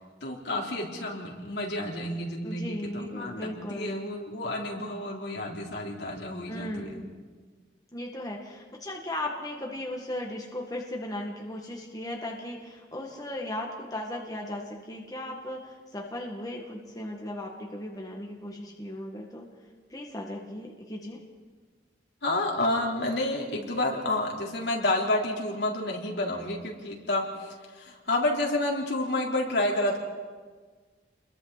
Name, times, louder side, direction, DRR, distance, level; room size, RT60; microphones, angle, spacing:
voice 1, 0.2-7.0 22.2-30.0, left 1 dB, 70° left, -1 dB, 3.7 m, -30 dB
voice 2, 2.4-4.0 6.5-7.1 7.9-19.5 19.9-21.2, left 1 dB, 20° left, 0 dB, 1.9 m, -37 dB
29.5 x 22.0 x 4.2 m, 1.5 s
head